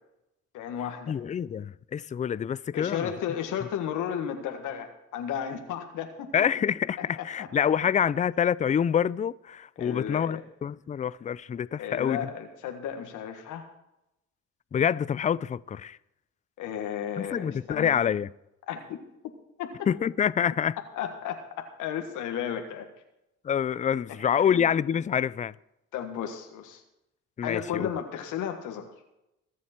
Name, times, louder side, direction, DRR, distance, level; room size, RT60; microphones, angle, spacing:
voice 1, 0.5-1.2 2.7-6.3 7.2-7.5 9.8-10.4 11.8-13.7 16.6-18.1 18.7-19.8 20.9-22.9 24.1-24.7 25.9-26.8 27.4-28.9, left 9 dB, 90° left, 1.7 m, -34 dB
voice 2, 1.1-3.1 6.3-12.3 14.7-16.0 17.2-18.3 19.9-20.8 23.4-25.5 27.4-27.9, left 8 dB, 25° left, 0.4 m, -27 dB
22.5 x 7.5 x 4.4 m
cardioid pair, 90°, 30 cm